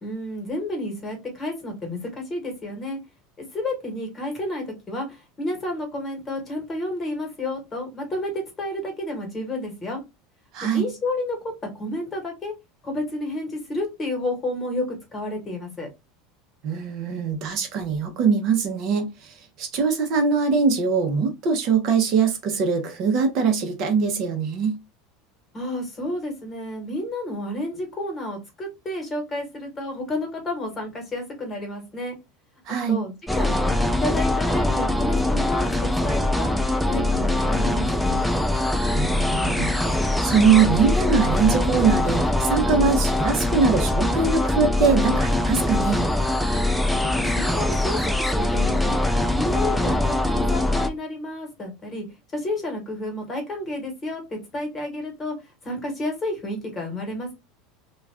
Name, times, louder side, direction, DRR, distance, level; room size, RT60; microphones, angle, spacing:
voice 1, 0.0-3.0 3.5-10.0 10.7-12.5 12.8-14.9 15.1-15.9 25.5-32.2 32.9-36.5 36.9-38.2 46.9-48.0 48.3-49.0 49.3-52.0 52.3-55.3 55.6-57.3, left 1 dB, 20° left, 1.2 m, -31 dB
voice 2, 10.5-10.9 16.6-24.8 32.7-33.0 38.9-46.0, right 5 dB, 50° right, 0.7 m, -22 dB
sound 1, 33.3-50.9, left 1 dB, ahead, 0.3 m, -22 dB
2.4 x 2.3 x 3.3 m
supercardioid pair, 140°, 0 cm